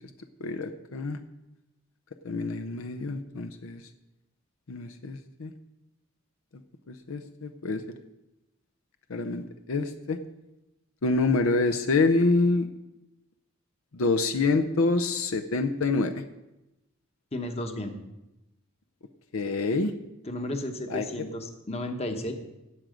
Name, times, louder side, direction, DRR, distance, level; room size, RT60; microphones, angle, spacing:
voice 1, 0.4-1.2 2.2-3.8 4.7-5.5 6.9-7.8 9.1-9.4 9.7-10.2 11.0-12.7 13.9-16.1 19.3-19.9 20.9-21.0, left 3 dB, 75° left, 7 dB, 0.7 m, -26 dB
voice 2, 17.3-17.9 20.2-22.3, left 1 dB, 30° left, 5 dB, 1.1 m, -33 dB
17.0 x 6.2 x 5.1 m, 0.96 s
head